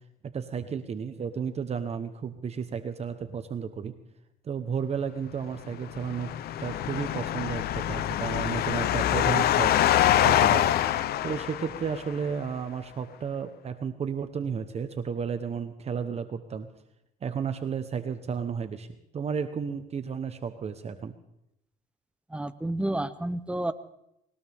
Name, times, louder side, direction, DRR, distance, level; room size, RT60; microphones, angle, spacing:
voice 1, 0.2-3.9 4.4-6.3 6.6-9.7 10.2-10.7 11.2-16.7 17.2-18.9 19.1-21.1, right 6 dB, 40° right, 9 dB, 1.1 m, -33 dB
sound 1, 5.8-12.1, left 12 dB, 65° left, 0.8 m, -25 dB
voice 2, 22.3-23.7, right 1 dB, 5° right, 12 dB, 0.8 m, -30 dB
20.5 x 19.5 x 3.6 m, 0.83 s
cardioid pair, 110°, 17 cm